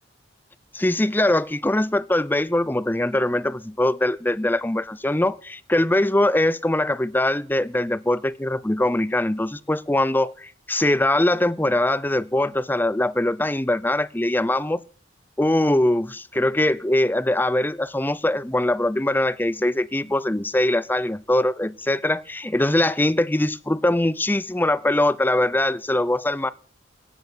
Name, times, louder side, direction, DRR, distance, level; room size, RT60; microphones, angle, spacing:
voice 1, 0.7-14.8 15.4-26.5, left 1 dB, 10° left, 0.6 m, -22 dB
17.5 x 6.8 x 8.5 m
head